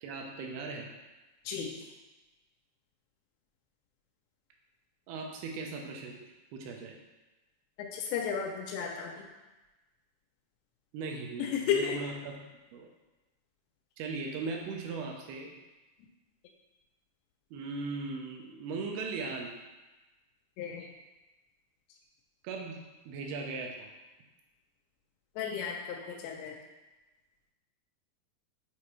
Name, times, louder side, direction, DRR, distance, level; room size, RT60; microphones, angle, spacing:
voice 1, 0.0-0.9 5.1-6.2 6.5-7.0 10.9-12.5 12.7-12.9 14.0-15.5 17.5-19.6 22.4-23.9, right 4 dB, 80° right, 1 dB, 2.4 m, -38 dB
voice 2, 7.8-9.2 11.4-12.0 20.6-20.9 25.4-26.6, left 7 dB, 85° left, 0 dB, 2.8 m, -33 dB
7.5 x 4.2 x 3.1 m, 1.1 s
omnidirectional pair, 4.9 m